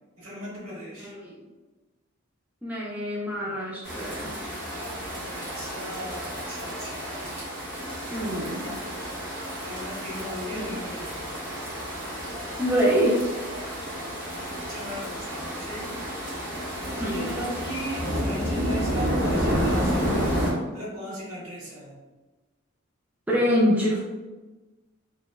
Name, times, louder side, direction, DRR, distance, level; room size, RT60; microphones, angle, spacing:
voice 1, 0.2-1.1 5.3-7.2 9.6-11.6 14.6-16.1 16.9-20.4 20.7-21.9, equal, 85° right, -5 dB, 1.0 m, -37 dB
voice 2, 1.0-1.4 2.6-4.3 8.1-8.7 10.5-10.6 12.6-13.2 17.0-17.3 23.3-24.0, equal, 5° right, -6 dB, 0.4 m, -25 dB
sound 1, 3.8-20.5, equal, 55° right, 1.3 m, -30 dB
3.0 x 2.1 x 2.2 m, 1.2 s
head